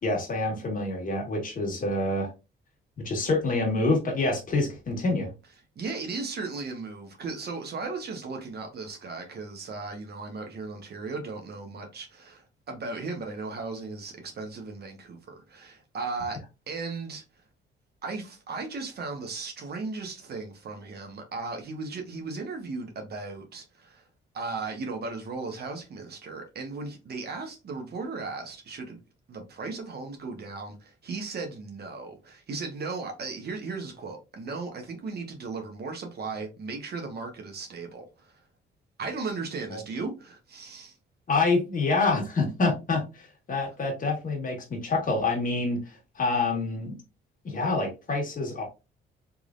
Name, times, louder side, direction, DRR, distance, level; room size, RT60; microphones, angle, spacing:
voice 1, 0.0-2.3 3.0-5.3 39.7-39.8 41.3-46.9 47.4-48.6, left 3 dB, 45° left, 1.7 m, -27 dB
voice 2, 5.8-16.4 16.7-17.2 18.0-24.1 24.3-29.0 29.3-38.4 39.0-41.0, right 4 dB, 55° right, 1.1 m, -36 dB
3.6 x 3.1 x 2.5 m
cardioid pair, 90°, 20 cm